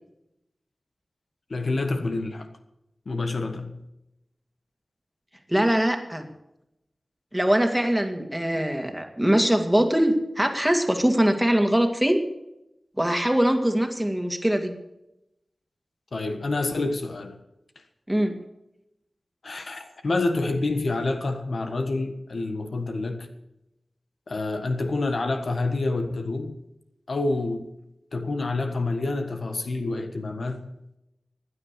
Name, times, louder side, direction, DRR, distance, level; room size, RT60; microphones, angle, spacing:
voice 1, 1.5-2.5 3.0-3.8 16.1-17.4 19.4-23.3 24.3-26.6 27.1-27.7 28.1-30.7, left 2 dB, 75° left, 7 dB, 1.4 m, -28 dB
voice 2, 5.5-6.3 7.3-12.2 13.0-14.7 18.1-18.3, right 1 dB, 5° right, 5 dB, 2.1 m, -22 dB
15.5 x 10.0 x 6.7 m, 0.88 s
wide cardioid pair, 65°, 0 cm